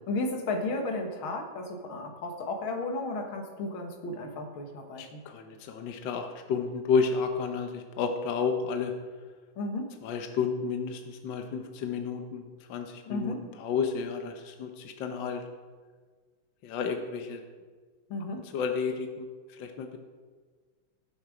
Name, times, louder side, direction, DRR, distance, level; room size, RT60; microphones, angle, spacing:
voice 1, 0.1-5.2 9.6-10.0 13.0-13.4 18.1-18.4, left 2 dB, 85° left, 3 dB, 2.3 m, -34 dB
voice 2, 5.0-8.9 10.0-13.3 13.6-15.4 16.6-17.4 18.5-19.3 19.6-20.0, left 5 dB, 70° left, 5 dB, 1.5 m, -31 dB
17.0 x 7.4 x 5.0 m, 1.5 s
omnidirectional pair, 2.2 m